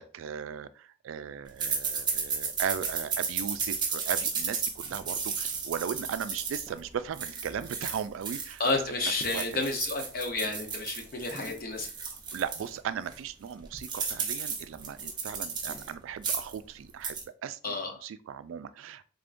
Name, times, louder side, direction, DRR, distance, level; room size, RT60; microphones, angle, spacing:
voice 1, 0.0-8.6 9.3-9.6 12.1-19.0, right 7 dB, 75° right, 13 dB, 0.3 m, -37 dB
sound 1, 1.6-8.8 9.1-12.7 13.1-13.2 13.5-15.9 16.2-16.6 16.9-17.2, right 5 dB, 20° right, 0.6 m, -34 dB
voice 2, 8.6-11.9 17.6-17.9, left 3 dB, 45° left, 3 dB, 0.8 m, -31 dB
3.7 x 3.5 x 2.5 m, 0.40 s
head